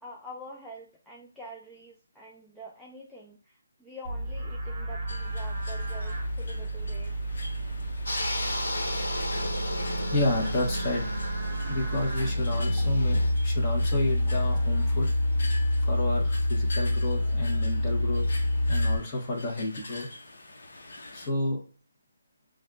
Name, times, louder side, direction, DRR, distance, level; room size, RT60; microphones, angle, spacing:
voice 1, 0.0-7.2, equal, ahead, -5 dB, 0.4 m, -46 dB
Livestock farm animals working animals, 4.0-19.0, left 1 dB, 20° right, 0.9 m, -28 dB
sound 1, 5.1-21.3, left 2 dB, 60° left, 1.1 m, -45 dB
sound 2, 8.1-13.3, left 2 dB, 85° left, 1.2 m, -34 dB
voice 2, 10.1-11.1 11.7-15.1 15.8-18.3 18.7-20.1 21.1-21.6, left 2 dB, 25° left, -1 dB, 1.2 m, -30 dB
6.1 x 2.5 x 2.3 m, 0.40 s
hypercardioid pair, 170°, 0 cm